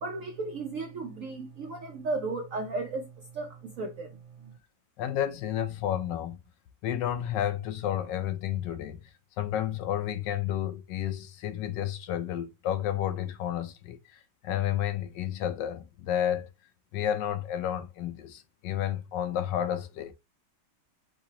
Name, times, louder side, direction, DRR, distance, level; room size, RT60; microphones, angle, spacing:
voice 1, 0.0-3.1 3.3-4.1, right 3 dB, 65° right, 0.8 m, -34 dB
voice 2, 5.0-6.4 6.8-9.1 9.4-16.5 16.9-20.1, left 10 dB, 75° left, 1.2 m, -31 dB
4.8 x 3.9 x 2.8 m
omnidirectional pair, 2.1 m